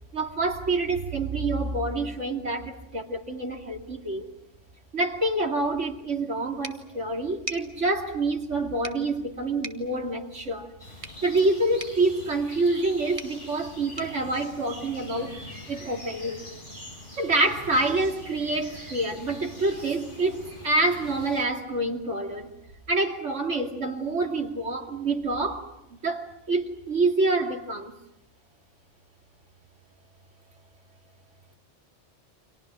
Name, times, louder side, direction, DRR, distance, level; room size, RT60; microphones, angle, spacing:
voice 1, 0.1-4.3 4.9-10.7 11.2-15.4 15.7-16.5 17.2-22.5 22.9-25.7 26.0-27.9, right 2 dB, 85° right, 2.9 m, -27 dB
sound 1, 6.6-15.3, right 2 dB, 30° right, 1.4 m, -45 dB
sound 2, 10.8-21.4, left 1 dB, 45° left, 7.8 m, -44 dB
30.0 x 26.0 x 6.1 m
omnidirectional pair, 1.2 m